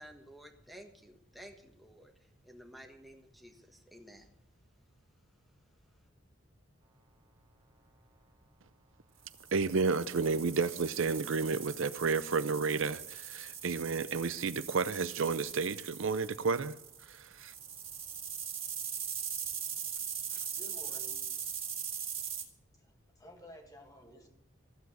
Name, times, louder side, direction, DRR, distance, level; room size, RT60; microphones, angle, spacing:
voice 1, 0.0-4.3, equal, ahead, 1.4 m, -53 dB
sound 1, 9.3-22.4, right 8 dB, 25° right, 1.9 m, -41 dB
voice 2, 9.5-16.8 17.1-17.5, right 4 dB, 70° right, 0.6 m, -31 dB
voice 3, 20.3-21.4 22.8-24.3, equal, 15° left, 1.9 m, -53 dB
15.0 x 8.0 x 7.8 m
head